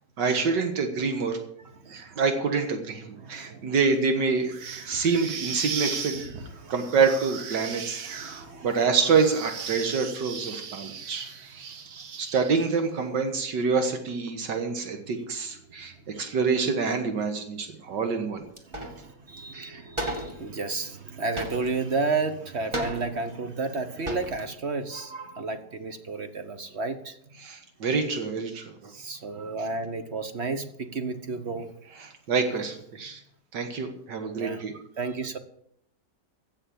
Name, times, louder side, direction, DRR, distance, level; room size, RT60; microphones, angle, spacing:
voice 1, 0.2-1.4 1.9-6.2 6.7-11.3 12.2-18.4 19.5-19.8 27.4-28.7 32.0-33.2 33.5-34.7, right 5 dB, 85° right, 6 dB, 2.1 m, -27 dB
voice 2, 3.2-3.8 4.9-5.1 6.5-6.7 7.6-7.7 8.0-8.8 16.1-16.3 17.9-18.0 18.7-27.2 28.9-31.7 34.3-34.6 35.0-35.4, right 3 dB, 45° right, 9 dB, 1.2 m, -32 dB
sound 1, 4.5-12.8, right 6 dB, 65° right, 1.7 m, -37 dB
sound 2, 18.6-19.1 19.4-19.5 20.0-20.4 21.4-22.0 22.7-23.3 23.8-23.9 24.1-24.5, right 1 dB, 15° right, 1.8 m, -33 dB
15.5 x 6.7 x 8.6 m, 0.71 s
omnidirectional pair, 1.9 m